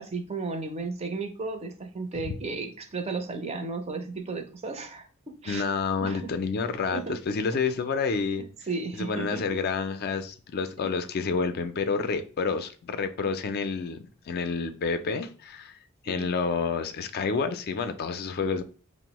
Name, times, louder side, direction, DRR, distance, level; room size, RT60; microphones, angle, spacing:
voice 1, 0.0-5.6 6.0-6.3 6.9-7.2 8.7-9.4 16.1-16.3, right 3 dB, 30° right, 0.5 m, -34 dB
voice 2, 5.5-8.4 8.9-15.8 16.0-18.6, left 5 dB, 45° left, 0.3 m, -29 dB
5.1 x 2.0 x 2.9 m
head